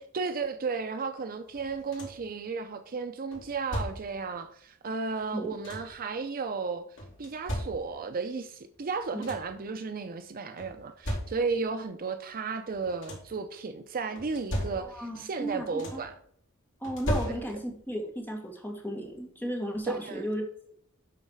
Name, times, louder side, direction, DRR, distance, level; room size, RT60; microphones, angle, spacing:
voice 1, 0.1-6.8 7.2-16.1 17.2-17.3 19.8-20.3, right 4 dB, 40° right, 0.5 m, -34 dB
sound 1, 1.5-2.3 3.3-4.3 5.2-6.1 7.0-8.2 8.7-8.8 9.0-9.7 10.6-11.7 12.7-13.4 14.2-15.2 15.5-16.2 16.8-17.8 19.1-19.2 19.7-19.9, equal, 60° left, 2.7 m, -37 dB
voice 2, 14.7-16.0 16.8-20.4, equal, 10° left, 1.7 m, -35 dB
11.0 x 4.1 x 4.7 m
head